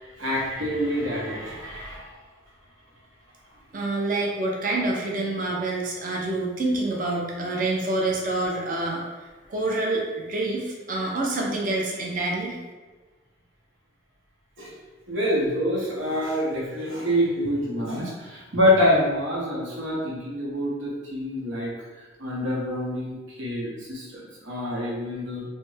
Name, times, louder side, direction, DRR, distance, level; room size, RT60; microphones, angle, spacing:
voice 1, 0.2-2.1 14.6-14.7 15.1-21.7 22.2-25.4, left 1 dB, 80° right, -4 dB, 0.9 m, -26 dB
voice 2, 3.7-9.0 9.5-12.6, right 2 dB, 45° right, -1 dB, 0.6 m, -27 dB
3.3 x 2.1 x 3.2 m, 1.3 s
head